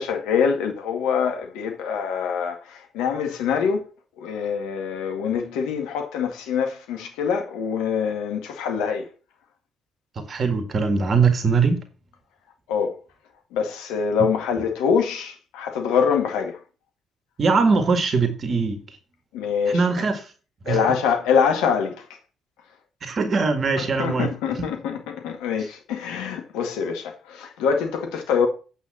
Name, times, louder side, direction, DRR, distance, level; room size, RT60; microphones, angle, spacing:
voice 1, 0.0-3.8 4.2-9.1 12.7-13.0 13.5-16.6 19.3-19.8 20.7-22.0 24.0-28.5, left 6 dB, 70° left, 1.9 m, -24 dB
voice 2, 10.2-11.8 17.4-19.0 19.7-20.3 20.6-20.9 23.0-24.7 25.6-25.7, right 4 dB, 45° right, 1.8 m, -22 dB
8.4 x 5.6 x 7.6 m
hypercardioid pair, 50°, 0 cm